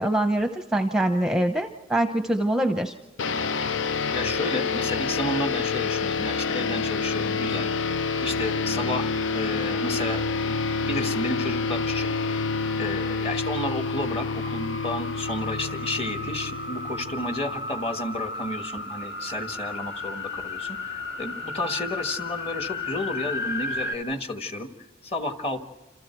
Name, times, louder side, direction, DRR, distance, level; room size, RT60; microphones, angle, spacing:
voice 1, 0.0-2.9, right 1 dB, 5° right, 6 dB, 0.7 m, -24 dB
sound 1, 3.2-18.0, left 4 dB, 90° left, 0.7 m, -28 dB
voice 2, 4.1-7.7 8.2-12.2 12.7-24.7 25.0-25.6, left 1 dB, 30° left, 7 dB, 1.6 m, -32 dB
sound 2, 9.5-24.0, left 2 dB, 60° left, 2.3 m, -36 dB
28.0 x 27.5 x 4.6 m, 1.1 s
head